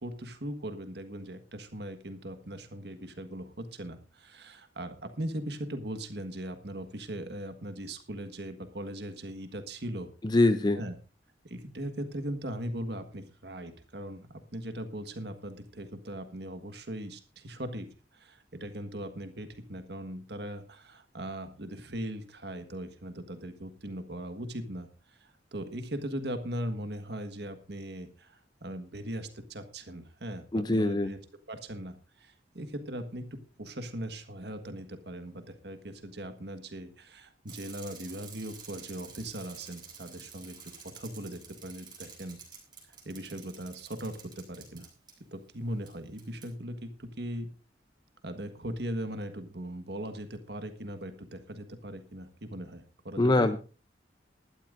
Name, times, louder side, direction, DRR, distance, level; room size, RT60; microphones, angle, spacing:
voice 1, 0.0-10.1 10.7-11.0 11.4-17.9 18.1-31.2 31.5-40.6 40.8-42.4 43.0-44.9 45.3-47.5 48.2-53.5, right 1 dB, 65° right, 8 dB, 1.6 m, -39 dB
voice 2, 10.2-10.8 30.5-31.1 53.2-53.6, left 2 dB, 25° left, 10 dB, 0.6 m, -23 dB
Bicycle, 37.5-45.1 45.9-46.0 46.2-46.5, right 6 dB, 25° right, 4.0 m, -49 dB
20.0 x 12.0 x 2.6 m, 0.34 s
head